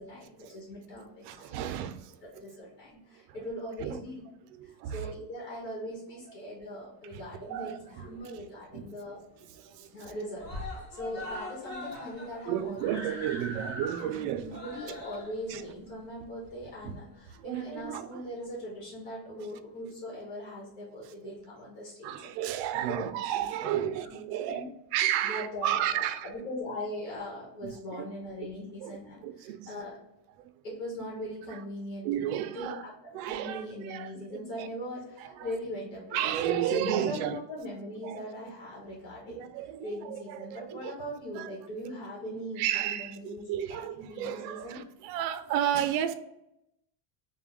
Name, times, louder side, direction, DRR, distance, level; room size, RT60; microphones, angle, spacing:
voice 1, 0.0-1.6 2.2-4.2 4.6-9.2 9.9-12.8 14.0-22.4 22.7-23.0 23.3-24.2 24.5-24.7 25.2-30.0 30.6-32.2 32.5-44.8, equal, 75° left, 1.5 m, -40 dB
voice 2, 1.2-2.2 3.8-4.0 4.5-5.1 7.1-8.2 8.7-8.9 9.5-10.1 12.5-14.6 15.5-15.6 16.8-17.0 17.3-18.2 21.2-21.3 22.0-24.6 24.9-26.3 27.6-28.1 28.8-29.8 30.4-30.5 31.5-31.6 32.0-32.8 33.1-34.7 35.2-35.5 36.1-37.4 38.0-38.2 39.3-41.0 41.3-41.5 42.6-46.1, right 11 dB, 75° right, 0.5 m, -33 dB
Screaming, 7.5-8.4 8.8-8.9 9.2-9.3 9.6-10.1 10.4-17.2 18.0-18.1, left 1 dB, 20° left, 1.0 m, -42 dB
3.6 x 2.2 x 3.6 m
cardioid pair, 145°, 49 cm